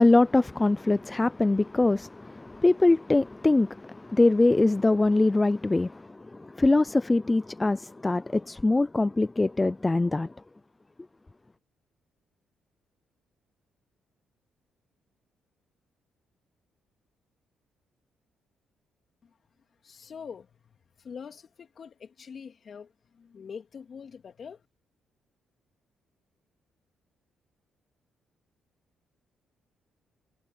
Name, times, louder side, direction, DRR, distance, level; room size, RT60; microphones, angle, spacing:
voice 1, 0.0-10.3, left 2 dB, 20° left, 0.5 m, -23 dB
voice 2, 19.8-24.6, left 6 dB, 50° left, 3.3 m, -44 dB
cardioid pair, 75°, 0 cm